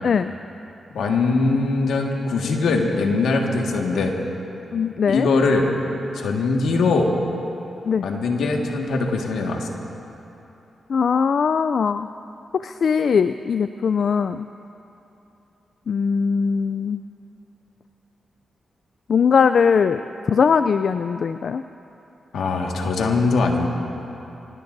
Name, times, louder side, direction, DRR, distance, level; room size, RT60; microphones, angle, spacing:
voice 1, 0.0-0.3 4.7-5.3 7.8-8.1 10.9-12.1 12.5-14.5 15.9-17.0 19.1-20.0 20.3-21.6, left 6 dB, 65° left, 11 dB, 0.3 m, -20 dB
voice 2, 0.9-4.1 5.1-5.7 6.1-7.1 8.0-9.8 22.3-23.7, left 3 dB, 85° left, 1 dB, 1.7 m, -21 dB
25.0 x 18.5 x 2.6 m, 3.0 s
cardioid pair, 60°, 0 cm